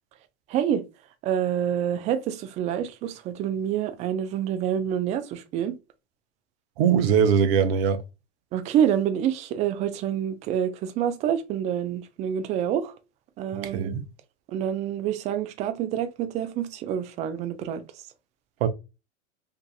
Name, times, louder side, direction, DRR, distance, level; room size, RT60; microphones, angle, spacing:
voice 1, 0.5-0.8 1.2-5.7 8.5-12.9 13.4-14.0 14.5-17.8, right 9 dB, 20° right, 0.3 m, -27 dB
voice 2, 6.8-8.0 13.6-14.0 18.6-18.7, right 7 dB, 55° right, 0.6 m, -21 dB
2.6 x 2.5 x 2.3 m
hypercardioid pair, 100°, 35 cm